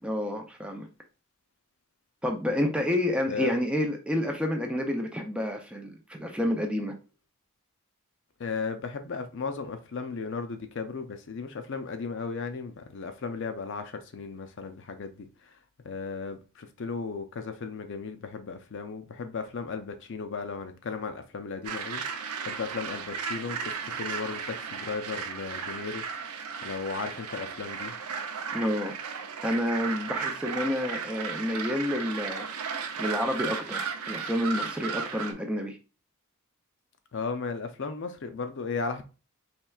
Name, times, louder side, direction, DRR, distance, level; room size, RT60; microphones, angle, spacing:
voice 1, 0.0-0.9 2.2-6.9 28.5-28.9 29.4-35.8, left 1 dB, 5° right, 0.4 m, -29 dB
voice 2, 8.4-15.6 15.8-26.0 26.6-27.9 37.1-39.0, left 4 dB, 55° left, 0.5 m, -35 dB
sound 1, 21.6-35.3, right 6 dB, 85° right, 0.6 m, -35 dB
4.4 x 3.2 x 2.3 m
head